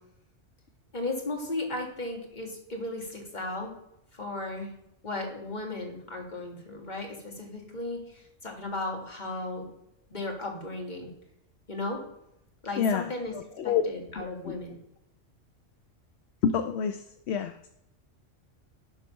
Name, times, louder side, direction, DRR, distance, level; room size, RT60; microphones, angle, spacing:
voice 1, 0.9-3.7 4.1-4.7 5.0-9.7 10.1-11.1 11.7-12.0 12.6-13.3 13.6-14.8, left 2 dB, 35° left, 1 dB, 2.0 m, -35 dB
voice 2, 12.8-13.8 14.2-14.5 16.4-17.7, left 7 dB, 65° left, 8 dB, 0.8 m, -29 dB
11.0 x 4.0 x 5.5 m, 0.81 s
omnidirectional pair, 1.3 m